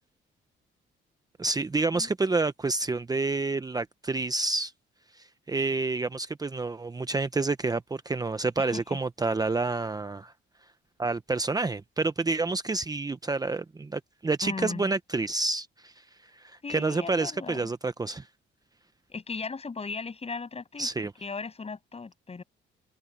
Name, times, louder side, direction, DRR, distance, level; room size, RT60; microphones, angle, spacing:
voice 1, 1.4-4.7 5.1-10.3 11.0-18.3 20.8-21.1, right 3 dB, 20° right, 0.8 m, -29 dB
voice 2, 8.6-9.0 14.4-14.9 16.6-17.7 19.1-20.9 21.2-22.4, left 4 dB, 30° left, 7.6 m, -37 dB
cardioid pair, 90°, 20 cm